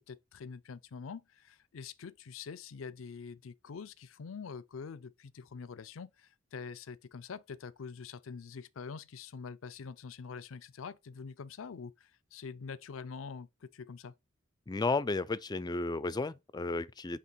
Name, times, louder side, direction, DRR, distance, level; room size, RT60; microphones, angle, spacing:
voice 1, 0.1-14.1, left 5 dB, 80° left, 0.5 m, -45 dB
voice 2, 14.7-17.2, left 3 dB, 20° left, 0.4 m, -33 dB
8.3 x 2.9 x 4.5 m
head